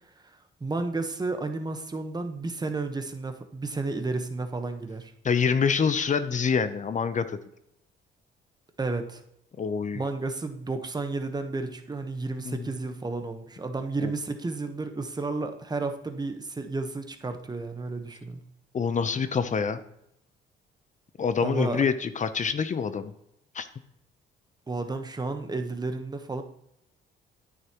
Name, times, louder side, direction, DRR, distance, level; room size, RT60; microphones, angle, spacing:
voice 1, 0.2-5.1 8.8-9.2 9.9-18.4 21.4-21.8 24.7-26.4, right 3 dB, 20° right, 7 dB, 1.1 m, -32 dB
voice 2, 5.2-7.4 9.6-10.0 12.5-12.6 14.0-14.1 18.7-19.8 21.2-23.1 23.5-23.7, left 6 dB, 40° left, 12 dB, 0.7 m, -26 dB
10.0 x 9.0 x 3.0 m, 0.78 s
cardioid pair, 90°, 20 cm